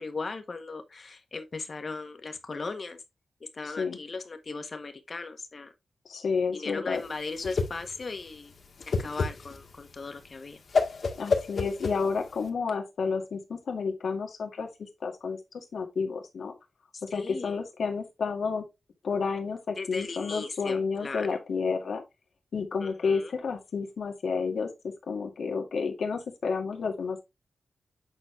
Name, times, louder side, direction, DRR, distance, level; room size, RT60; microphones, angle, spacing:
voice 1, 0.0-3.0 3.4-5.7 6.5-8.5 9.0-10.6 16.9-17.6 19.8-21.4 22.8-23.3, left 4 dB, 50° left, 1.4 m, -38 dB
voice 2, 3.6-4.0 6.1-7.0 11.1-14.7 15.0-15.4 15.7-16.5 17.0-18.6 19.0-22.0 22.5-24.7 25.1-27.3, left 5 dB, 80° left, 2.0 m, -30 dB
Whoosh swoosh swish, 7.0-12.5, left 4 dB, 65° left, 1.7 m, -30 dB
8.8 x 4.2 x 3.3 m
cardioid pair, 80°, 0 cm